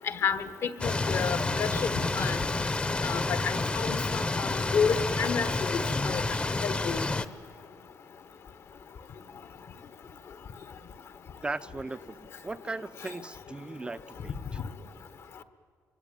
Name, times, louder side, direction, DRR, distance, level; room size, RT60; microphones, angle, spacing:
voice 1, 0.0-2.4 3.0-6.2 6.6-7.1, left 6 dB, 55° left, 11 dB, 1.2 m, -30 dB
sound 1, 0.8-7.2, left 3 dB, 20° left, 0.9 m, -29 dB
voice 2, 11.4-14.6, right 3 dB, 15° right, 14 dB, 0.6 m, -38 dB
25.5 x 23.5 x 9.1 m, 2.3 s
cardioid pair, 125°, 6 cm